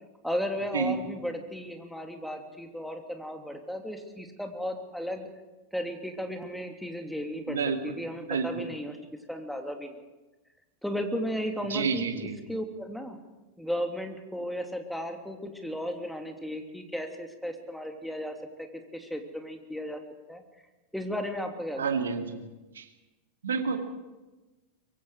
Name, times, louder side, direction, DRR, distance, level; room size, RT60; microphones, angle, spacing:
voice 1, 0.2-5.3 5.7-9.0 9.3-10.0 10.8-13.2 13.6-20.0 20.3-20.4 20.9-22.1, equal, ahead, 4 dB, 2.9 m, -35 dB
voice 2, 7.5-8.0 8.3-8.7 11.7-12.4 21.8-22.5 22.8-22.9 23.4-23.8, right 6 dB, 65° right, 5 dB, 2.3 m, -29 dB
24.0 x 23.0 x 5.0 m, 1.1 s
figure-of-eight pair, 90°, 0 cm